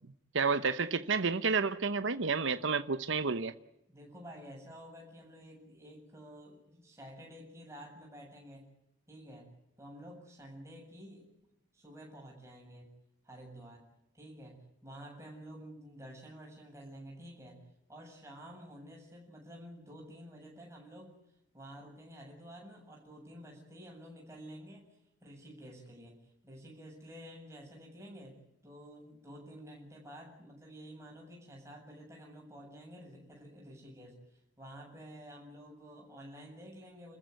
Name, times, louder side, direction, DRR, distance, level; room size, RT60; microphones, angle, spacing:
voice 1, 0.3-3.5, right 4 dB, 70° right, 0.9 m, -30 dB
voice 2, 3.9-8.7 9.1-9.5 9.8-11.3 11.7-12.9 13.2-13.8 14.1-17.6 17.9-21.2 21.5-24.9 25.2-37.2, equal, 15° right, 7.6 m, -50 dB
29.5 x 14.5 x 9.5 m
head